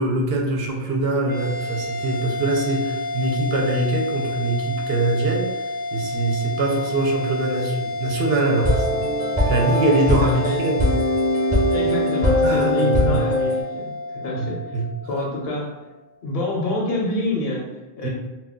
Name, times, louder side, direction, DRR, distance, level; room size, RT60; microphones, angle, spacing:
voice 1, 0.0-5.5 5.9-9.1 9.5-10.8 12.4-13.2 14.4-14.5 14.7-14.9 18.0-18.1, right 2 dB, 70° right, 0 dB, 0.8 m, -23 dB
sound 1, 1.3-15.9, left 2 dB, 55° left, 0.5 m, -30 dB
sound 2, 8.6-13.6, left 1 dB, 10° right, 0.5 m, -21 dB
voice 2, 10.1-10.7 11.7-15.7 16.2-18.1, left 1 dB, 70° left, -2 dB, 0.9 m, -27 dB
2.2 x 2.2 x 3.6 m, 1.1 s
omnidirectional pair, 1.1 m